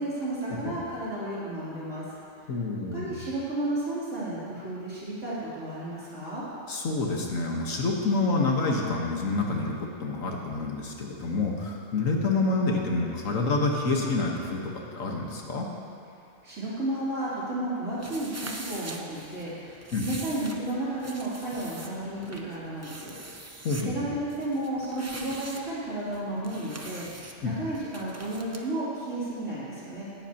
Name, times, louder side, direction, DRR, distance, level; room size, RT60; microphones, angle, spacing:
voice 1, 0.0-2.0 2.9-6.4 16.4-23.1 23.8-27.1 27.4-30.1, right 1 dB, 70° right, -10 dB, 3.8 m, -33 dB
voice 2, 2.5-3.2 6.7-15.7 19.9-20.2 23.6-24.1 27.4-27.5, left 3 dB, 85° left, 0 dB, 1.8 m, -28 dB
sound 1, 18.0-28.6, right 2 dB, 20° right, 0.5 m, -43 dB
17.0 x 11.5 x 3.0 m, 2.7 s
omnidirectional pair, 1.3 m